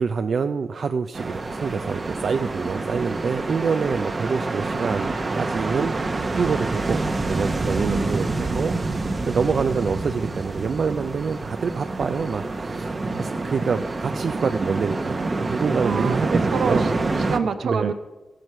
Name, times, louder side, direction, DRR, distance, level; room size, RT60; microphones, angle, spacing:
voice 1, 0.0-8.8 9.3-16.9 17.6-17.9, right 5 dB, 65° right, 9 dB, 0.4 m, -26 dB
sound 1, 1.1-17.4, right 3 dB, 35° right, 0.8 m, -27 dB
voice 2, 15.8-17.9, right 5 dB, 80° right, 8 dB, 0.8 m, -27 dB
15.0 x 7.8 x 5.6 m, 1.2 s
wide cardioid pair, 95°, 0 cm